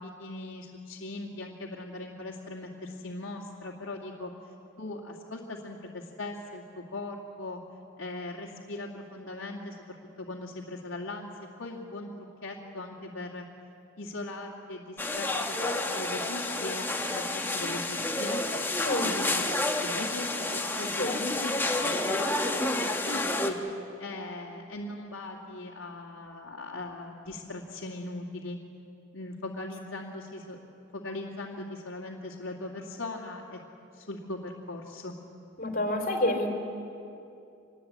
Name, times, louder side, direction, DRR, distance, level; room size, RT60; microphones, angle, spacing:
voice 1, 0.0-7.6 8.0-9.8 10.3-11.3 11.6-13.5 14.0-15.7 15.9-18.4 19.0-19.4 19.8-20.3 20.5-23.6 24.0-28.6 29.1-30.6 30.9-33.6 33.9-35.2, left 2 dB, 65° left, -3 dB, 2.3 m, -39 dB
sound 1, 15.0-23.5, left 2 dB, 10° left, 1.5 m, -30 dB
voice 2, 35.6-36.5, left 1 dB, 45° left, 3 dB, 3.9 m, -28 dB
26.0 x 21.0 x 8.6 m, 2.7 s
head